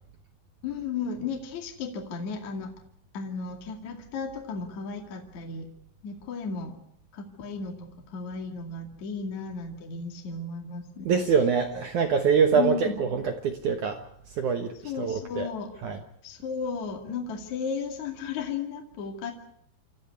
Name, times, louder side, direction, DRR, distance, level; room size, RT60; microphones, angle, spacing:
voice 1, 0.6-2.7 3.1-5.7 6.0-6.8 7.1-11.2 12.6-13.0 14.8-15.7 16.2-19.3, left 5 dB, 45° left, 3 dB, 3.1 m, -34 dB
voice 2, 11.0-14.0 14.3-15.5 15.8-16.0, right 6 dB, 70° right, 7 dB, 1.8 m, -24 dB
29.0 x 14.0 x 9.6 m, 0.68 s
omnidirectional pair, 5.5 m